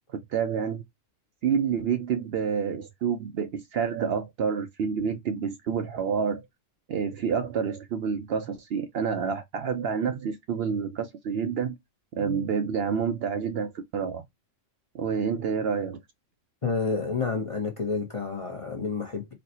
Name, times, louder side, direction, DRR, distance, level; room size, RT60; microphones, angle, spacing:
voice 1, 0.3-0.8 1.4-6.5 6.9-11.7 12.2-14.2 14.9-16.0, right 6 dB, 65° right, 0.7 m, -28 dB
voice 2, 16.6-19.3, left 4 dB, 35° left, 0.6 m, -29 dB
4.2 x 2.1 x 2.7 m
omnidirectional pair, 1.3 m